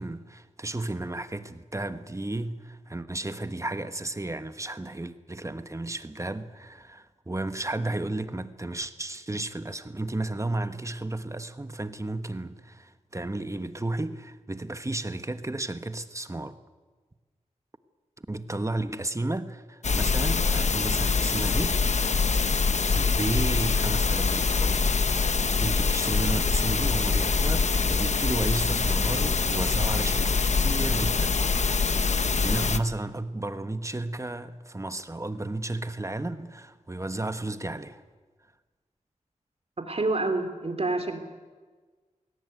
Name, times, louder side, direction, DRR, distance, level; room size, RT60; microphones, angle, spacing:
voice 1, 0.0-16.6 18.3-21.8 22.9-24.8 25.6-31.4 32.4-38.0, right 2 dB, 25° right, 1.3 m, -33 dB
sound 1, 19.8-32.8, left 4 dB, 60° left, 0.9 m, -24 dB
voice 2, 39.8-41.2, right 2 dB, 50° right, 3.1 m, -28 dB
21.0 x 18.0 x 9.4 m
wide cardioid pair, 70°, 13 cm